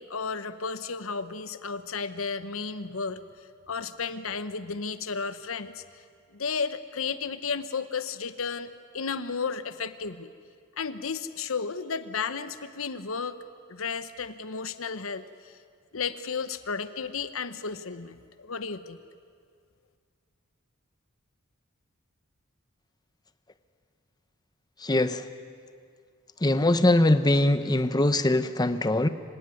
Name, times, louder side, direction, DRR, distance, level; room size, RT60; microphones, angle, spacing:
voice 1, 0.0-3.2 3.7-5.8 6.3-10.3 10.8-13.4 13.7-15.5 15.9-19.0, left 5 dB, 75° left, 12 dB, 0.9 m, -33 dB
voice 2, 24.8-25.2 26.4-29.1, left 1 dB, 20° left, 11 dB, 0.9 m, -22 dB
26.0 x 17.5 x 9.7 m, 2.1 s
head